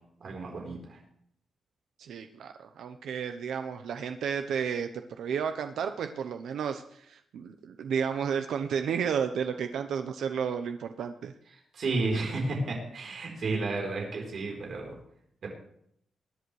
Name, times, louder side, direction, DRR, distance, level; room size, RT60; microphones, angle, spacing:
voice 1, 0.2-1.0 11.7-15.0 15.4-15.5, right 3 dB, 55° right, 0 dB, 4.0 m, -32 dB
voice 2, 2.0-11.3, right 7 dB, 90° right, 7 dB, 0.8 m, -32 dB
21.5 x 11.0 x 3.3 m, 0.71 s
wide cardioid pair, 150°, 0 cm